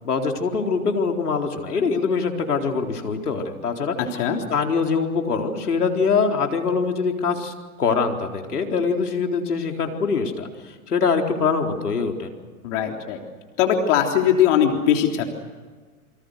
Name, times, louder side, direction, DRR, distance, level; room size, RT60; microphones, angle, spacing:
voice 1, 0.0-3.9 4.5-12.3, left 5 dB, 90° left, 3 dB, 4.3 m, -23 dB
voice 2, 12.6-13.2 13.6-15.3, left 9 dB, 50° left, 3 dB, 3.6 m, -20 dB
29.0 x 24.5 x 6.6 m, 1.5 s
hypercardioid pair, 115°, 44 cm